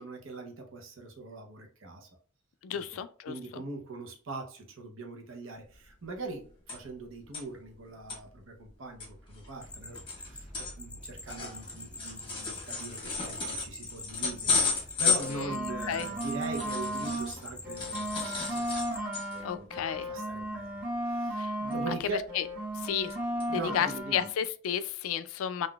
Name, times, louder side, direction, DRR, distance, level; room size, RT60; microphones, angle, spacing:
voice 1, 0.0-2.1 2.7-18.7 19.3-22.3 23.5-24.3, right 3 dB, 80° right, 0.8 m, -42 dB
voice 2, 2.6-3.3 15.3-15.5 15.9-16.1 19.4-20.1 21.4-21.5 21.9-22.0 22.3-22.4 22.8-23.1 23.4-25.7, left 8 dB, 85° left, 0.3 m, -32 dB
sound 1, 5.7-5.8 6.1-7.0 7.3-7.4 7.9-8.2 8.7-8.8 9.0-17.5 17.7-19.5 19.9-20.1 20.4-20.6 21.7-22.3 22.7-23.1 23.4-23.5 24.1-24.2, left 5 dB, 25° left, 1.1 m, -34 dB
sound 2, 9.6-19.0, left 2 dB, 5° left, 0.4 m, -46 dB
sound 3, 15.0-17.3 17.6-22.0 22.3-24.3, right 1 dB, 40° right, 1.3 m, -35 dB
3.8 x 2.5 x 2.3 m
head